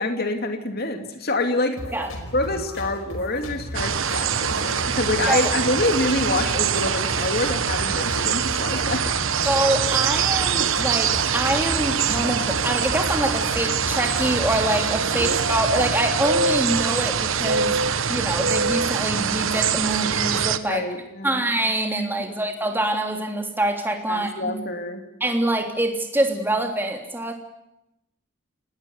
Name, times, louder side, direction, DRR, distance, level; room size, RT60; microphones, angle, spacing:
voice 1, 0.0-1.8 2.3-9.1 15.2-15.3 20.7-21.4 24.1-25.0, left 2 dB, 45° left, 5 dB, 2.9 m, -26 dB
sound 1, 1.8-15.8, equal, 75° left, 5.1 m, -36 dB
sound 2, 3.7-20.6, right 6 dB, 65° right, 1.2 m, -24 dB
voice 2, 9.4-17.8 18.1-20.8 21.2-24.5 25.2-27.3, right 1 dB, 10° right, 3 dB, 3.3 m, -25 dB
29.0 x 19.5 x 8.1 m, 0.85 s
head